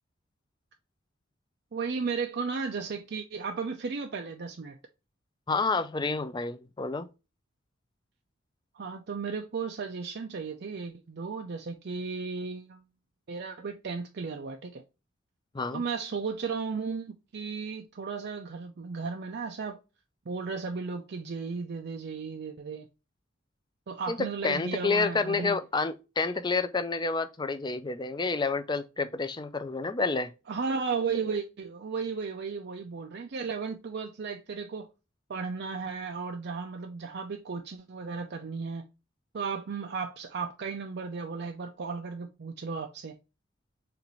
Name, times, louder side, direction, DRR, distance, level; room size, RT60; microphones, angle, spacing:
voice 1, 1.7-4.8 8.7-12.8 13.3-14.8 15.7-19.8 20.3-22.9 23.9-25.6 30.5-34.9 35.3-38.9 39.3-43.2, right 5 dB, 55° right, 0.5 m, -35 dB
voice 2, 5.5-7.1 15.5-15.8 24.1-30.3, left 4 dB, 20° left, 0.4 m, -29 dB
6.6 x 2.5 x 3.0 m
head